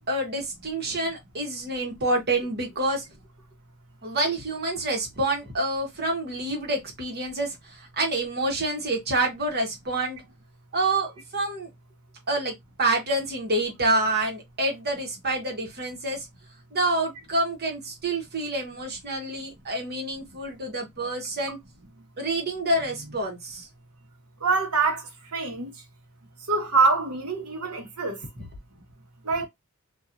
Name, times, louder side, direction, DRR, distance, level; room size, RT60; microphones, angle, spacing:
voice 1, 0.1-3.0 4.0-10.2 10.7-11.7 12.3-16.3 16.7-21.6 22.2-23.7, right 2 dB, 45° right, 1.1 m, -27 dB
voice 2, 24.4-25.0 25.3-25.7 26.5-28.2 29.2-29.5, right 4 dB, 80° right, 1.0 m, -24 dB
2.9 x 2.4 x 2.5 m
head